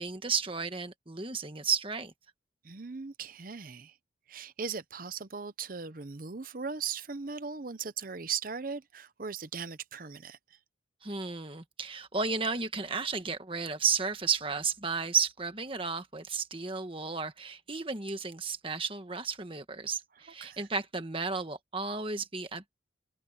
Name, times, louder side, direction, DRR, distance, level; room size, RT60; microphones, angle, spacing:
voice 1, 0.0-2.1 11.0-22.8, right 5 dB, 30° right, 1.5 m, -33 dB
voice 2, 2.6-4.0 4.3-10.4 20.4-20.7, right 6 dB, 50° right, 0.8 m, -38 dB
head